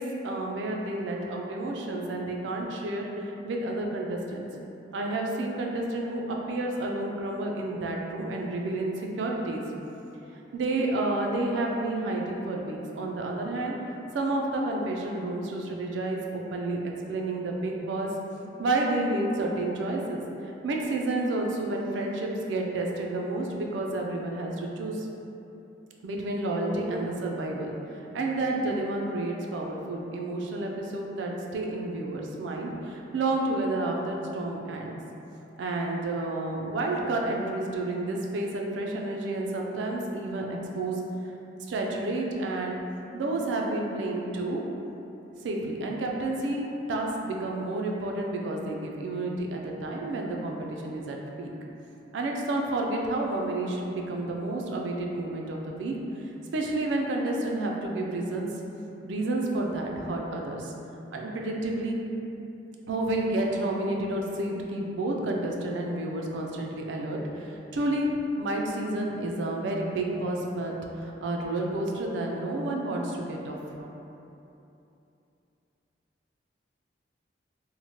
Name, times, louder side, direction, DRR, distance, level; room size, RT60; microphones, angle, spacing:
voice 1, 0.0-4.4 4.9-9.6 10.5-13.8 14.1-18.1 18.4-20.2 20.6-25.1 26.0-34.9 35.6-41.0 41.7-42.8 43.1-44.6 45.4-51.5 52.1-58.5 59.0-60.7 61.1-62.0 62.9-68.1 68.4-73.9, right 2 dB, 85° right, 0 dB, 0.4 m, -30 dB
3.0 x 2.0 x 2.8 m, 2.9 s
head